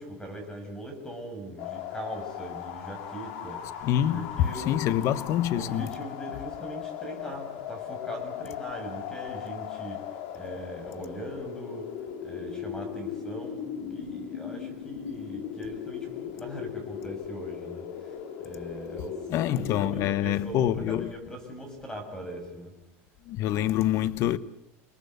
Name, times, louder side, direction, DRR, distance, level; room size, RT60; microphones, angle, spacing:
voice 1, 0.0-3.6 4.1-10.0 10.3-11.9 12.2-17.9 18.4-19.2 19.5-22.7, right 1 dB, 10° left, 7.0 m, -40 dB
sound 1, 1.6-20.1, left 9 dB, 65° left, 3.7 m, -38 dB
voice 2, 3.8-5.9 19.3-21.1 23.3-24.4, left 11 dB, 40° left, 1.1 m, -26 dB
29.5 x 20.0 x 8.0 m
supercardioid pair, 155°, 7 cm